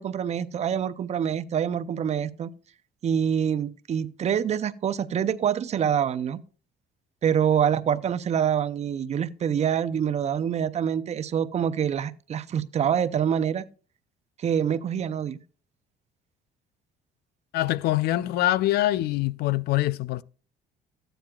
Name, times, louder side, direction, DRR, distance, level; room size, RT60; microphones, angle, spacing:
voice 1, 0.0-2.5 3.0-6.4 7.2-13.7 14.4-15.4, right 8 dB, 40° right, 0.5 m, -26 dB
voice 2, 17.5-20.2, left 15 dB, 75° left, 0.4 m, -24 dB
13.5 x 9.0 x 2.3 m
cardioid pair, 110°, 17 cm